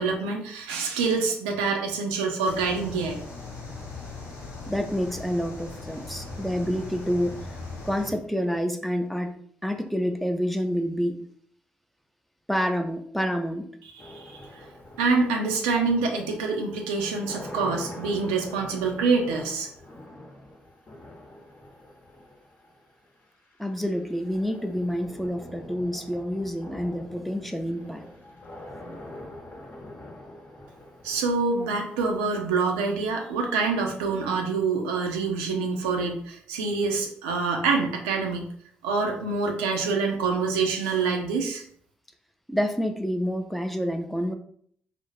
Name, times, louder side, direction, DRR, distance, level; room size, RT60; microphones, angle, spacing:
voice 1, 0.0-3.2 13.9-14.6 15.0-19.7 31.0-38.5 38.8-41.6, right 4 dB, 90° right, 2 dB, 0.4 m, -26 dB
sound 1, 2.5-8.1, left 3 dB, 75° left, 0.7 m, -39 dB
voice 2, 4.7-7.4 7.9-9.3 9.6-11.2 12.5-13.7 23.6-28.0 42.5-44.3, equal, ahead, 5 dB, 0.4 m, -28 dB
sound 2, 14.0-33.0, left 1 dB, 40° left, 0.8 m, -45 dB
2.4 x 2.0 x 3.0 m, 0.62 s
hypercardioid pair, 45°, 5 cm